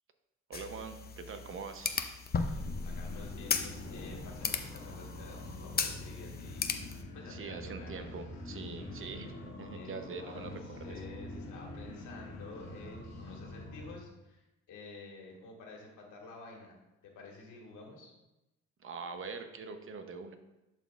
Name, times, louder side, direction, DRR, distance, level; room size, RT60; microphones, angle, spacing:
sound 1, 0.5-7.0, left 5 dB, 30° left, 0.6 m, -37 dB
voice 1, 0.5-2.0 7.3-11.0 18.8-20.4, right 5 dB, 45° right, 7 dB, 0.9 m, -43 dB
voice 2, 2.4-8.1 9.7-18.1, left 3 dB, 85° left, 0 dB, 1.8 m, -50 dB
sound 2, 2.5-14.0, left 2 dB, 60° left, 1.7 m, -45 dB
11.0 x 4.2 x 2.5 m, 0.97 s
cardioid pair, 90°, 30 cm